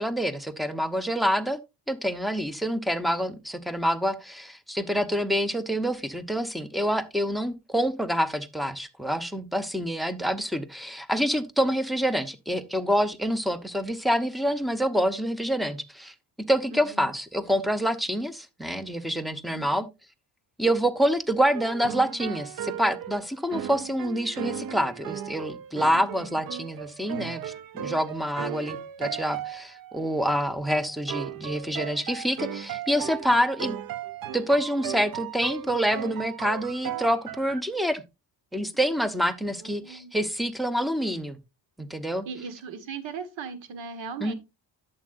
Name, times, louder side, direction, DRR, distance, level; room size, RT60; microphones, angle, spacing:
voice 1, 0.0-1.6 1.9-16.1 16.5-19.9 20.6-33.8 34.3-38.0 38.5-41.4 41.8-42.3 44.2-44.3, equal, ahead, 0.7 m, -27 dB
voice 2, 16.7-17.1 19.5-19.9 25.9-26.4 39.6-40.1 42.2-44.3, right 5 dB, 90° right, 1.6 m, -39 dB
sound 1, 21.5-37.6, right 10 dB, 50° right, 0.6 m, -37 dB
11.0 x 7.7 x 2.5 m
cardioid pair, 125°, 44 cm